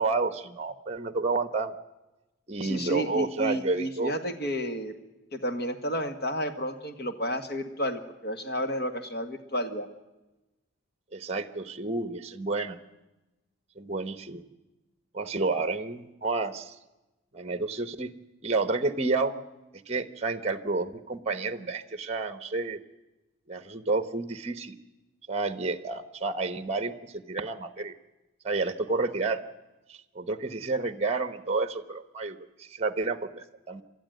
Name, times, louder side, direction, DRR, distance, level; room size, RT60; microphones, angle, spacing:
voice 1, 0.0-1.7 2.5-4.1 11.1-12.8 13.8-14.4 15.1-16.7 17.3-18.1 18.4-19.3 19.7-22.8 23.5-24.7 25.3-27.9 28.4-29.4 29.9-33.8, right 3 dB, 30° right, 11 dB, 0.9 m, -30 dB
voice 2, 2.6-4.9 5.3-9.9, equal, 50° left, 7 dB, 1.7 m, -31 dB
28.5 x 12.5 x 9.3 m, 1.1 s
head